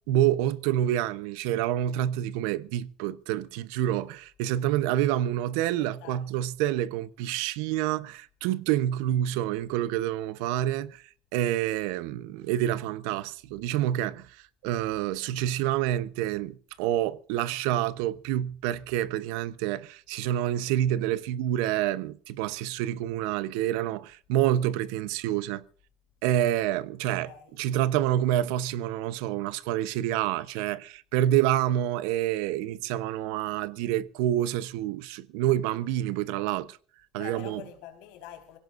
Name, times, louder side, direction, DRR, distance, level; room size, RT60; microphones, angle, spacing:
voice 1, 0.1-11.0 11.3-14.4 14.6-25.6 26.2-27.3 27.6-36.8 37.1-37.6, right 12 dB, 85° right, 0.9 m, -28 dB
voice 2, 5.8-6.4 27.2-27.6 37.2-38.6, left 10 dB, 80° left, 4.5 m, -45 dB
25.5 x 17.0 x 2.6 m
cardioid pair, 175°, 0 cm